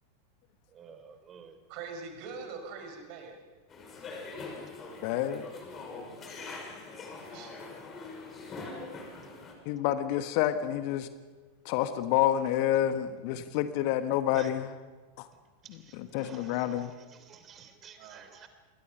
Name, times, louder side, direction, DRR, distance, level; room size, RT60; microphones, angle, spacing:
voice 1, 0.7-1.6 6.4-7.4 13.4-13.5 14.3-14.5 15.6-18.5, right 7 dB, 25° right, 9 dB, 3.1 m, -51 dB
voice 2, 1.7-3.4 6.2-6.8 7.3-7.5 18.0-18.3, right 4 dB, 45° right, 4 dB, 5.6 m, -43 dB
sound 1, 3.7-9.5, left 3 dB, 25° left, 6.1 m, -43 dB
voice 3, 5.0-5.4 9.6-11.1 11.6-14.6 15.2-15.3 16.0-16.9, left 12 dB, 45° left, 10 dB, 1.4 m, -28 dB
28.5 x 22.0 x 5.5 m, 1.3 s
figure-of-eight pair, 90°, 0 cm